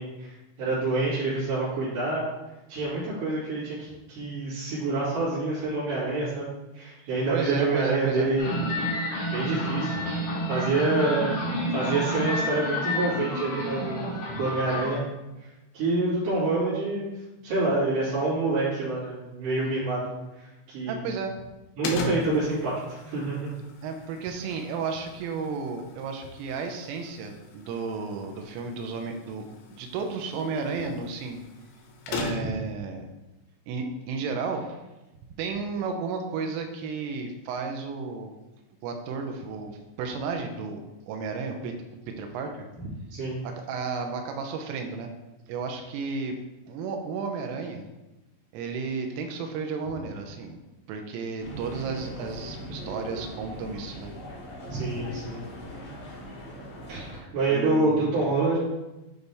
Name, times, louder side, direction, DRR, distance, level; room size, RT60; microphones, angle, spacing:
voice 1, 0.0-2.3 2.7-6.5 6.7-8.5 9.3-11.3 11.7-14.0 14.4-15.0 15.7-17.1 17.4-21.0 21.8-23.5 42.8-43.4 54.7-55.4 56.9-57.1 57.3-58.6, right 2 dB, 65° right, -11 dB, 4.4 m, -27 dB
voice 2, 7.0-8.3 20.9-21.4 23.8-31.4 32.1-33.1 33.7-34.8 35.4-38.3 38.8-41.7 42.1-42.7 43.4-45.1 45.5-46.4 46.7-47.8 48.5-50.6 50.9-54.1 57.5-58.3, right 4 dB, 90° right, 4 dB, 3.3 m, -33 dB
sound 1, 8.4-14.9, equal, 60° left, 3.5 m, -29 dB
sound 2, 21.8-32.7, left 3 dB, 80° left, 2.9 m, -40 dB
sound 3, 51.4-57.2, equal, 45° left, 2.8 m, -40 dB
10.0 x 4.0 x 3.4 m, 1.0 s
omnidirectional pair, 5.8 m